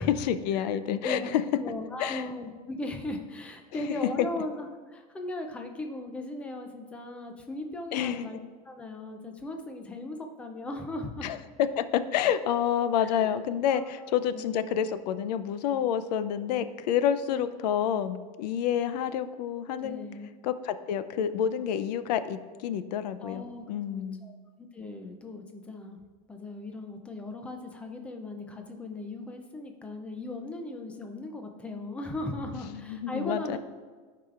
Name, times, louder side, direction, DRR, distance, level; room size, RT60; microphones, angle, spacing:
voice 1, 0.0-1.4 2.0-2.2 3.7-3.8 4.2-4.3 7.9-8.2 11.2-20.1 20.4-24.3 32.7-33.6, left 9 dB, 85° left, 12 dB, 0.5 m, -28 dB
voice 2, 1.5-8.4 8.7-11.3 13.0-13.3 13.7-14.5 17.2-17.4 19.8-20.3 23.2-26.0 26.3-33.6, left 2 dB, 5° left, 4 dB, 0.4 m, -38 dB
13.0 x 4.8 x 2.4 m, 1.5 s
supercardioid pair, 170°, 21 cm